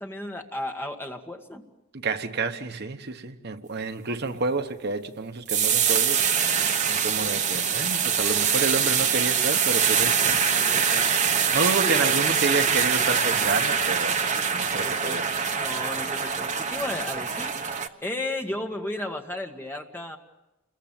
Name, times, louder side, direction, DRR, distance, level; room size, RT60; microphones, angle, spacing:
voice 1, 0.0-1.6 10.6-11.2 11.8-12.4 14.8-15.2 15.5-17.6 18.0-20.2, left 1 dB, 10° left, 1.8 m, -34 dB
voice 2, 1.9-10.4 11.5-15.3, right 3 dB, 50° right, 1.0 m, -29 dB
sound 1, 5.5-17.9, right 7 dB, 35° right, 1.2 m, -24 dB
29.0 x 22.5 x 7.5 m
head